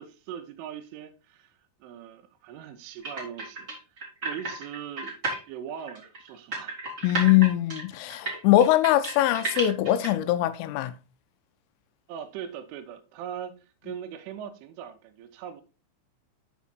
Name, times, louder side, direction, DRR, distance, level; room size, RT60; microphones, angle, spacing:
voice 1, 0.0-1.5 1.8-3.7 4.2-5.2 5.5-6.8 12.1-13.5 13.8-15.6, right 9 dB, 80° right, 3.0 m, -40 dB
sound 1, 3.0-5.4 5.8-10.1, right 3 dB, 25° right, 1.9 m, -32 dB
voice 2, 7.0-10.9, left 13 dB, 90° left, 3.2 m, -22 dB
7.1 x 5.2 x 4.0 m
omnidirectional pair, 5.7 m